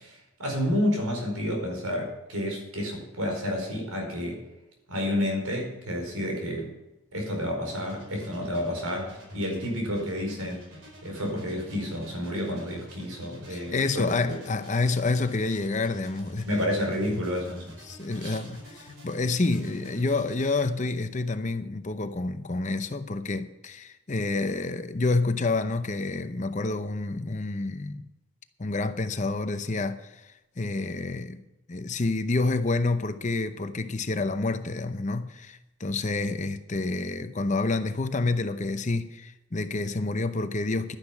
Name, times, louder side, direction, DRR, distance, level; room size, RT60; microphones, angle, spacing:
voice 1, 0.0-4.4 4.9-6.7 7.1-10.6 11.0-14.4 16.4-17.8 18.2-18.4, left 1 dB, 90° right, 4.8 m, -30 dB
sound 1, 7.7-20.7, equal, 55° right, 4.5 m, -47 dB
voice 2, 13.5-16.5 17.1-17.3 17.8-28.0 28.6-31.4 31.7-41.0, left 3 dB, 35° left, 0.7 m, -28 dB
11.5 x 10.5 x 5.9 m
head